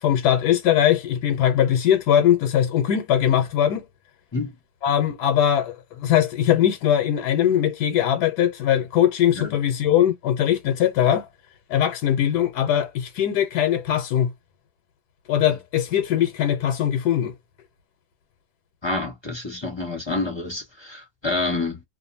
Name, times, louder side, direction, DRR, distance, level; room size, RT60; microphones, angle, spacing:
voice 1, 0.0-3.8 4.8-11.3 11.7-14.3 15.3-17.3, left 10 dB, 80° left, 1.2 m, -21 dB
voice 2, 18.8-21.8, left 3 dB, 20° left, 0.8 m, -28 dB
2.6 x 2.5 x 2.6 m
omnidirectional pair, 1.7 m